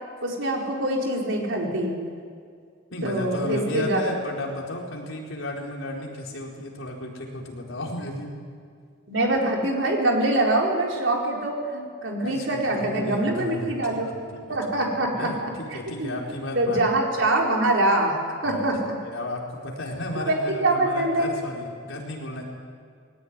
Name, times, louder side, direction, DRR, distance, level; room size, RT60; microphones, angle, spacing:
voice 1, 0.2-1.9 3.0-4.0 9.1-14.1 14.5-16.2 16.5-18.9 20.2-21.3, right 1 dB, 65° right, -1 dB, 4.5 m, -24 dB
voice 2, 2.9-8.3 12.2-16.8 18.4-18.6 19.0-22.4, left 1 dB, 75° left, -1 dB, 4.5 m, -34 dB
20.5 x 18.0 x 9.8 m, 2.2 s
head